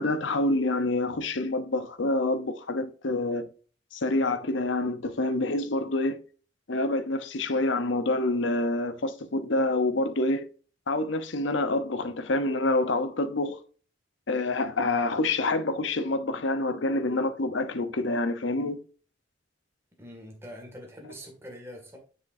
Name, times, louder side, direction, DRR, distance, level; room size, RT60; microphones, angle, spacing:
voice 1, 0.0-3.5 3.9-6.2 6.7-10.4 10.9-13.6 14.3-18.8, left 2 dB, 70° left, 0.8 m, -27 dB
voice 2, 20.0-22.0, equal, 15° right, 2.0 m, -44 dB
7.2 x 6.5 x 2.6 m
head